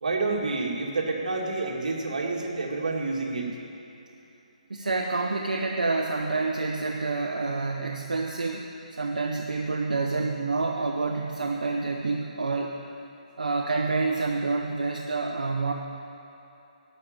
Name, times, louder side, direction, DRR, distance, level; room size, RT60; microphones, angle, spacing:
voice 1, 0.0-3.6, right 3 dB, 65° right, -1 dB, 2.4 m, -29 dB
voice 2, 4.7-8.7 8.9-12.7 13.4-15.7, right 3 dB, 85° right, 1 dB, 1.0 m, -28 dB
12.5 x 6.7 x 8.9 m, 2.8 s
hypercardioid pair, 155°, 4 cm